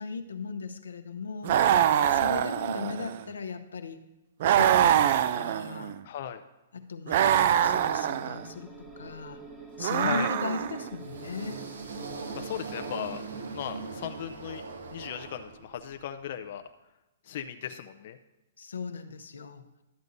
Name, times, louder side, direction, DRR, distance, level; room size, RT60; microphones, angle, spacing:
voice 1, 0.0-1.7 2.1-4.0 4.5-6.0 6.7-9.4 9.8-11.6 18.6-19.6, left 4 dB, 90° left, 7 dB, 0.8 m, -37 dB
sound 1, 1.4-3.2 4.4-6.0 7.1-8.4 9.8-10.9, right 10 dB, 55° right, 0.4 m, -24 dB
voice 2, 6.0-6.4 10.0-10.3 12.3-13.2 13.5-14.6 14.9-16.6 17.2-18.2, left 10 dB, 55° left, 7 dB, 0.4 m, -37 dB
sound 2, 7.5-13.2, right 3 dB, 10° right, 1.1 m, -47 dB
sound 3, 10.8-16.0, right 4 dB, 85° right, 1.1 m, -40 dB
12.0 x 8.1 x 2.6 m, 1.0 s
hypercardioid pair, 135°, 0 cm